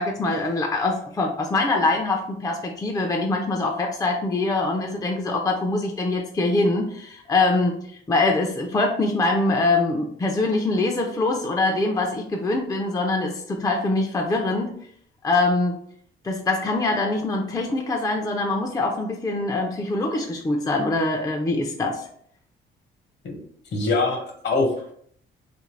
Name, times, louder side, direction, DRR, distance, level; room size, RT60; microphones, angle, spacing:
voice 1, 0.0-7.8 8.1-14.7 15.2-15.8 16.2-22.0, left 2 dB, 20° left, 1 dB, 0.5 m, -23 dB
voice 2, 23.7-24.9, left 3 dB, 60° left, 2 dB, 1.1 m, -24 dB
2.8 x 2.5 x 3.2 m, 0.62 s
cardioid pair, 90°, 20 cm